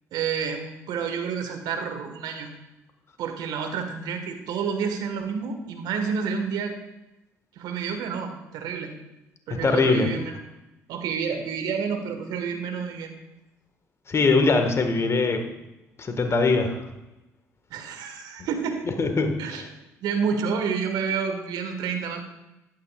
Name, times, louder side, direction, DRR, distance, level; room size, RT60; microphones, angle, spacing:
voice 1, 0.1-2.5 3.2-6.7 7.5-8.9 9.5-10.4 10.9-13.1 17.7-18.9 19.4-19.6 20.0-22.2, right 6 dB, 60° right, 5 dB, 1.6 m, -29 dB
voice 2, 9.5-10.1 14.1-15.4 16.0-16.8 19.0-19.4, left 3 dB, 35° left, 6 dB, 1.7 m, -21 dB
14.5 x 11.5 x 2.5 m, 0.95 s
figure-of-eight pair, 50°, 8 cm